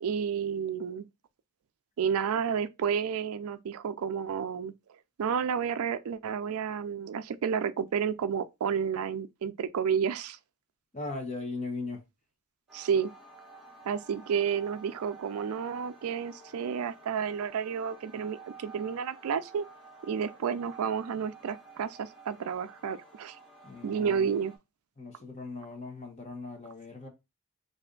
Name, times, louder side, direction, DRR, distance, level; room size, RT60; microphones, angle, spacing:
voice 1, 0.0-1.1 2.0-4.7 5.2-10.4 12.7-13.1 13.9-19.6 20.0-23.4 23.8-24.5, right 7 dB, 80° right, 0.4 m, -31 dB
voice 2, 10.9-12.0 23.6-24.3 25.0-27.1, left 3 dB, 30° left, 0.9 m, -38 dB
sound 1, 12.7-24.6, right 4 dB, ahead, 1.1 m, -51 dB
3.2 x 2.6 x 3.7 m
head